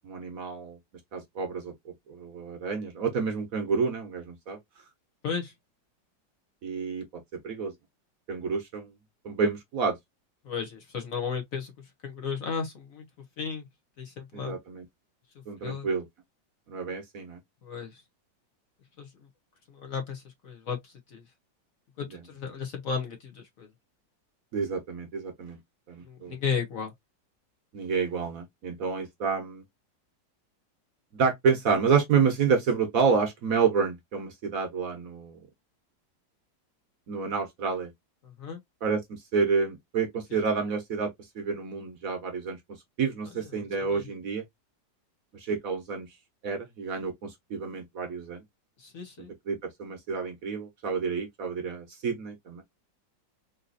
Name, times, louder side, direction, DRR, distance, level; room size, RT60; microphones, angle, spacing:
voice 1, 0.0-0.8 1.1-1.7 2.1-4.6 6.6-7.0 7.4-7.7 8.3-8.9 9.2-10.0 14.3-14.8 15.5-16.1 16.7-17.4 22.1-22.2 24.5-25.6 25.9-26.4 27.7-29.6 31.1-35.4 37.1-37.9 38.8-39.0 39.3-41.1 41.3-42.6 43.0-44.4 45.3-46.1 46.4-48.4 49.5-52.6, right 5 dB, 60° right, 1.1 m, -29 dB
voice 2, 10.4-11.7 12.0-13.0 13.4-13.7 14.0-14.6 15.6-15.9 17.6-18.0 19.0-19.1 19.7-21.2 22.0-23.7 26.0-26.9 38.4-38.6 43.9-44.1 48.8-49.3, left 6 dB, 55° left, 1.0 m, -34 dB
3.9 x 2.8 x 2.5 m
omnidirectional pair, 2.0 m